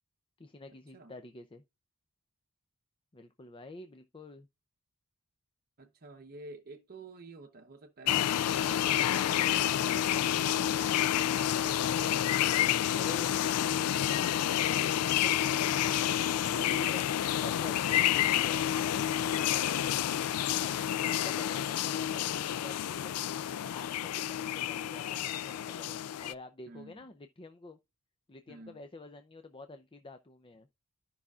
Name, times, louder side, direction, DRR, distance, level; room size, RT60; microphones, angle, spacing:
voice 1, 0.4-1.6 3.1-4.5 12.6-13.5 14.8-15.5 16.2-18.6 20.6-23.1 23.6-27.8 28.3-30.7, left 2 dB, 25° left, 0.6 m, -48 dB
voice 2, 5.8-10.9 11.5-12.3 14.1-14.6 16.4-16.6 20.7-20.9 26.7-27.0 28.5-28.8, right 2 dB, 45° right, 0.8 m, -50 dB
sound 1, 8.1-26.3, left 11 dB, 75° left, 0.4 m, -29 dB
13.5 x 5.6 x 2.4 m
head